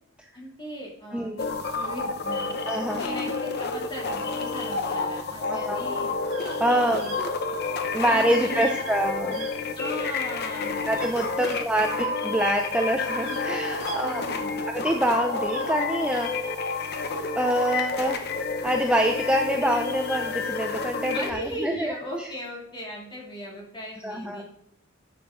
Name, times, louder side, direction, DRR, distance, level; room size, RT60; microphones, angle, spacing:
voice 1, 0.3-6.1 6.7-7.1 8.1-8.8 9.8-10.8 11.3-12.1 13.9-14.6 21.1-24.4, equal, 25° left, -3 dB, 2.9 m, -38 dB
sound 1, 1.4-21.3, left 3 dB, 50° left, 0.9 m, -30 dB
voice 2, 2.7-3.0 5.5-5.8 6.6-7.3 7.9-9.5 10.9-14.3 14.7-16.6 17.3-18.2 18.6-22.3 24.0-24.4, right 1 dB, 5° right, 3 dB, 0.6 m, -26 dB
sound 2, 6.3-6.6 7.0-7.2 8.6-8.9 9.3-10.2 10.9-11.6 12.5-12.6 12.9-14.7 15.4-16.3, right 4 dB, 75° right, 4.1 m, -42 dB
13.0 x 6.8 x 3.8 m, 0.75 s
head